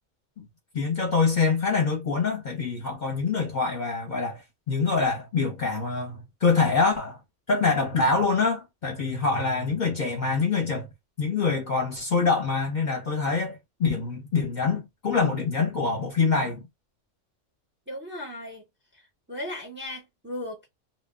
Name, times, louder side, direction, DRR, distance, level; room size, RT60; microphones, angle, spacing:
voice 1, 0.7-4.4 4.7-7.2 7.5-10.9 11.2-16.7, left 4 dB, 45° left, 0.7 m, -25 dB
voice 2, 17.9-18.6 18.9-19.0 19.3-20.7, left 1 dB, 10° right, 0.6 m, -36 dB
2.2 x 2.1 x 3.4 m
omnidirectional pair, 1.3 m